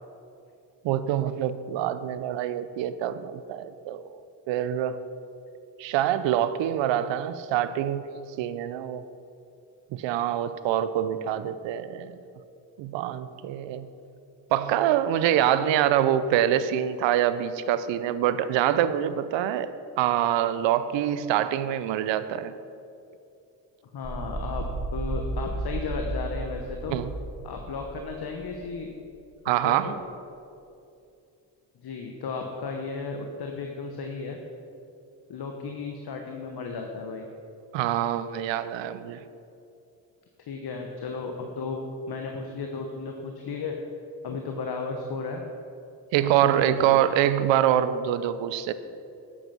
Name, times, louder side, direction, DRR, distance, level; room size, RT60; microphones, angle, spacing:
voice 1, 0.8-4.0 4.5-5.0 5.8-8.1 8.4-9.0 9.9-12.2 12.8-13.9 14.5-19.7 20.0-22.5 26.9-27.1 29.5-29.9 37.7-39.2 46.1-48.7, right 11 dB, 85° right, 13 dB, 0.6 m, -25 dB
voice 2, 23.9-24.6 24.9-27.0 27.4-28.9 29.6-29.9 31.8-34.4 35.3-37.3 40.5-43.8 44.2-45.4 46.4-47.0, left 4 dB, 60° left, 3 dB, 1.2 m, -34 dB
sound 1, 24.0-28.7, right 2 dB, 30° right, 1.9 m, -33 dB
9.0 x 8.4 x 5.9 m, 2.6 s
supercardioid pair, 60°, 43 cm